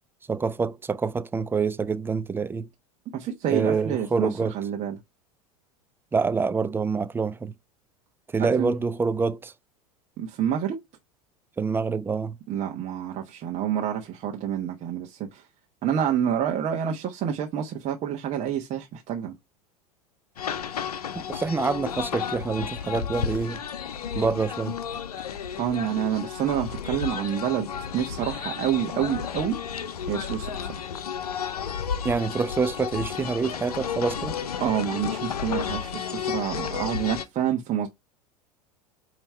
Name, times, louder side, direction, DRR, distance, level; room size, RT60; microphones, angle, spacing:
voice 1, 0.3-2.7 3.5-4.5 6.1-7.5 8.3-9.5 11.6-12.4 21.2-23.6 24.1-24.8 32.0-34.4, right 4 dB, 10° right, 0.4 m, -26 dB
voice 2, 3.1-5.0 8.4-8.8 10.2-10.8 12.5-15.4 15.8-19.3 25.6-29.6 30.1-30.7 34.6-37.9, right 9 dB, 35° right, 1.3 m, -28 dB
sound 1, 20.4-37.3, left 8 dB, 75° left, 0.8 m, -32 dB
8.9 x 3.1 x 4.4 m
figure-of-eight pair, 80°, 20 cm